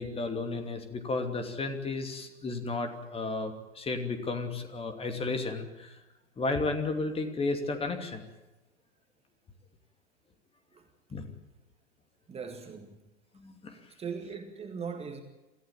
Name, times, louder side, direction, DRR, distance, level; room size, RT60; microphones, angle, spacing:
voice 1, 0.0-6.0 6.4-8.2 11.1-11.3 13.3-13.8, left 3 dB, 15° left, 2.8 m, -33 dB
voice 2, 12.3-13.0 14.0-15.2, right 6 dB, 15° right, 1.9 m, -39 dB
27.5 x 15.0 x 8.8 m
figure-of-eight pair, 100°, 35 cm